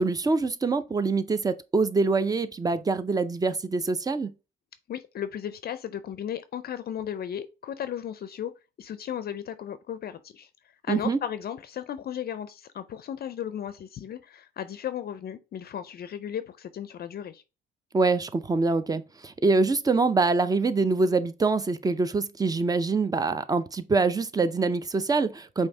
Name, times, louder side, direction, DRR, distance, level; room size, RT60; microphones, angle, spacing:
voice 1, 0.0-4.3 10.9-11.2 17.9-25.7, right 3 dB, 20° right, 0.5 m, -25 dB
voice 2, 4.9-8.5 8.8-10.5 10.8-17.4, left 9 dB, 50° left, 0.4 m, -35 dB
5.1 x 2.7 x 3.3 m
cardioid pair, 90°, 20 cm